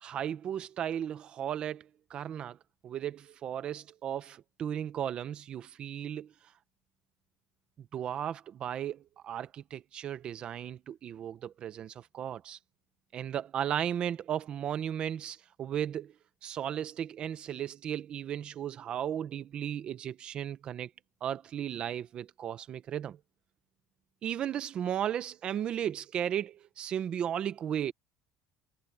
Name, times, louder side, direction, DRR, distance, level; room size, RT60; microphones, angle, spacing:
voice 1, 0.0-2.6 2.8-6.3 7.9-12.6 13.1-16.1 16.4-20.9 21.2-23.2 24.2-27.9, right 10 dB, 30° right, 0.8 m, -35 dB
cardioid pair, 180°, 3 cm